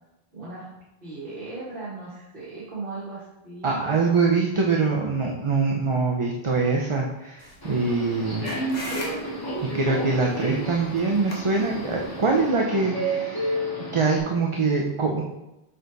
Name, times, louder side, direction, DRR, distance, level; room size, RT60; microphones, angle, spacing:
voice 1, 0.3-0.7 1.0-4.0, right 3 dB, 55° right, -9 dB, 1.8 m, -37 dB
voice 2, 3.6-8.5 9.7-13.6 13.9-15.2, right 4 dB, 35° right, -1 dB, 0.7 m, -24 dB
sound 1, 7.4-12.5, left 1 dB, 40° left, 1.3 m, -41 dB
Subway metro underground, 7.6-14.2, right 1 dB, 20° left, 2.3 m, -31 dB
6.8 x 4.9 x 4.0 m, 0.94 s
omnidirectional pair, 1.1 m